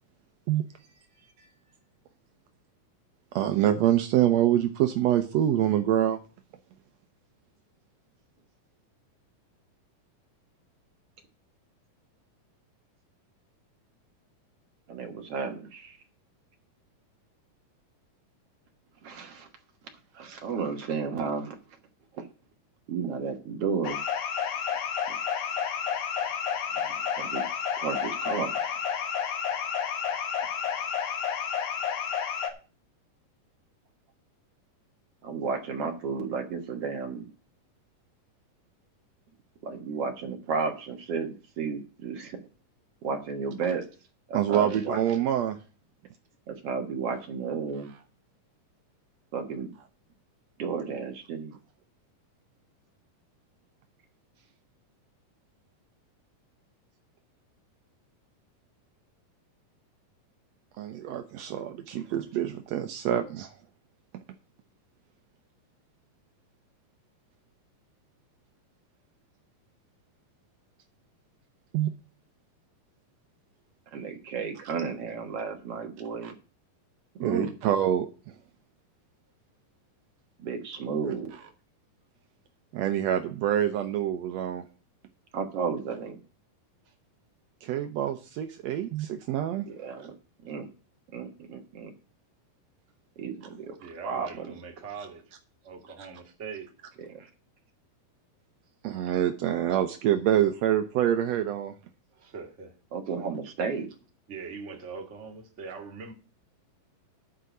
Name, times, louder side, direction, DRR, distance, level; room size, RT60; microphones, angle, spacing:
voice 1, 3.3-6.2 44.3-45.6 60.8-63.5 71.7-71.9 76.2-76.3 77.2-78.1 82.7-84.6 87.6-89.6 98.8-101.8, right 11 dB, 85° right, 1.5 m, -26 dB
voice 2, 14.9-16.0 19.0-19.5 20.1-21.6 22.2-22.3 22.9-24.0 25.1-25.2 26.9-27.5 27.8-28.6 35.2-37.3 39.6-42.4 43.0-43.9 44.3-45.0 46.5-47.9 49.3-49.7 50.6-51.6 61.9-62.0 63.4-63.5 73.9-76.4 77.2-77.5 80.4-81.3 85.3-86.2 89.7-90.2 90.4-90.7 91.1-91.9 93.2-93.7 94.0-94.5 97.0-97.3 102.9-103.9, right 5 dB, 55° right, 1.9 m, -33 dB
sound 1, 23.8-32.5, left 7 dB, 85° left, 3.1 m, -30 dB
voice 3, 93.8-95.3 95.6-96.7 102.1-102.7 104.3-106.1, right 5 dB, 30° right, 1.5 m, -41 dB
10.0 x 4.8 x 8.0 m
omnidirectional pair, 4.0 m